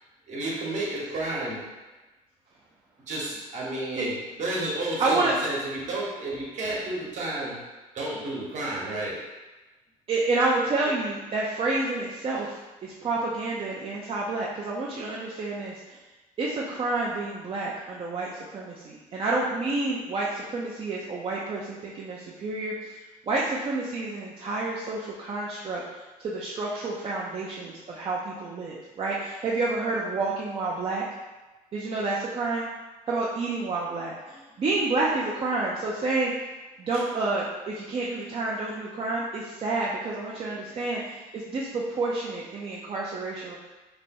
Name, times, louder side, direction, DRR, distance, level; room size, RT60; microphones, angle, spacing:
voice 1, 0.3-1.6 3.1-7.6 7.9-9.2 33.8-33.9, right 2 dB, 60° right, -4 dB, 1.2 m, -31 dB
voice 2, 5.0-5.3 10.1-16.0 16.4-22.9 23.3-31.0 31.7-32.7 33.1-36.3 36.8-43.6, right 3 dB, 40° right, -5 dB, 0.5 m, -29 dB
3.3 x 2.2 x 4.2 m, 1.2 s
cardioid pair, 90°, 14 cm